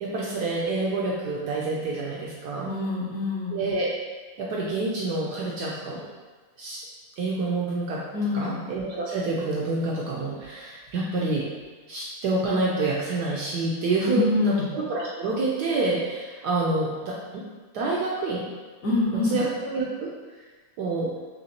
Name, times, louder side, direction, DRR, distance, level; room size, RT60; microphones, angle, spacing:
voice 1, 0.0-2.7 3.5-3.9 4.4-6.1 6.6-6.8 7.2-8.0 8.3-11.5 11.9-17.4 17.7-18.5 19.2-20.2 20.8-21.2, right 3 dB, 75° right, -4 dB, 0.9 m, -27 dB
voice 2, 2.6-3.6 8.1-8.6 14.0-14.7 18.8-19.3, left 3 dB, 55° left, -7 dB, 1.0 m, -25 dB
4.1 x 3.1 x 2.8 m, 1.3 s
omnidirectional pair, 2.2 m